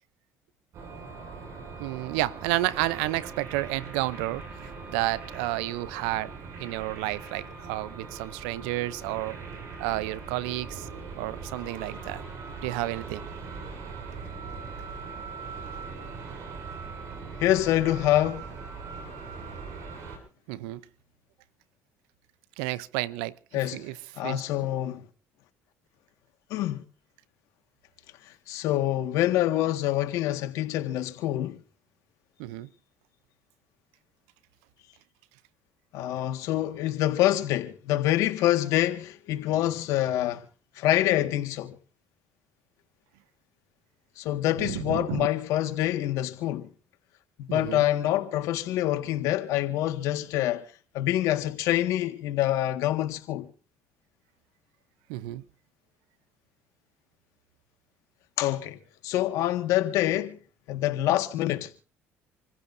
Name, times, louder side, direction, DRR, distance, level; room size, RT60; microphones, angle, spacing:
sound 1, 0.7-20.2, right 4 dB, 60° right, 6.9 m, -40 dB
voice 1, 1.8-4.6 4.9-6.3 6.6-9.4 9.8-10.9 11.2-12.3 12.6-13.2 20.5-20.8 22.6-23.4 23.7-24.0 24.2-24.4 32.4-32.7 44.6-45.3 47.5-47.9 55.1-55.4, right 17 dB, 85° right, 0.7 m, -31 dB
voice 2, 17.4-18.5 23.5-23.8 24.2-25.1 26.5-26.8 28.5-31.6 35.9-40.5 40.8-41.8 44.2-46.7 47.4-50.7 50.9-53.5 58.4-60.4 60.7-61.7, left 13 dB, 75° left, 1.8 m, -26 dB
27.5 x 15.5 x 2.7 m
supercardioid pair, 80°, 6 cm